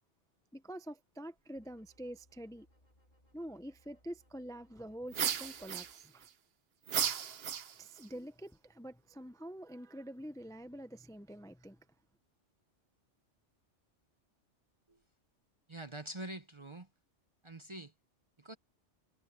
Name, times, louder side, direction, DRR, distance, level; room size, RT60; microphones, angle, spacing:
voice 1, 0.5-2.7 3.3-6.3 7.8-11.9, equal, 5° left, 0.6 m, -46 dB
sound 1, 1.6-5.9, equal, 40° left, 6.4 m, -69 dB
sound 2, 5.1-6.3 6.9-8.0, right 8 dB, 60° right, 1.0 m, -35 dB
voice 2, 15.7-16.9 17.4-17.9 18.4-18.6, right 1 dB, 30° right, 0.7 m, -45 dB
omnidirectional pair, 1.2 m